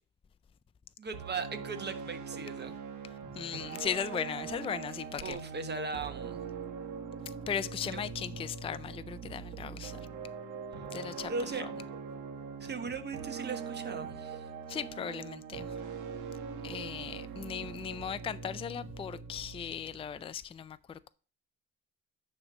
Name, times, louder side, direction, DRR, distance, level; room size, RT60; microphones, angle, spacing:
voice 1, 1.0-2.7 5.2-6.4 7.8-8.0 11.3-11.7 12.6-14.5, right 4 dB, 35° right, 1.2 m, -38 dB
sound 1, 1.1-20.3, right 6 dB, 80° right, 1.3 m, -42 dB
voice 2, 3.3-5.4 7.3-10.0 10.9-11.3 11.6-11.7 14.7-15.7 16.6-21.1, left 8 dB, 20° left, 0.4 m, -37 dB
9.8 x 3.3 x 6.0 m
cardioid pair, 90°, 30 cm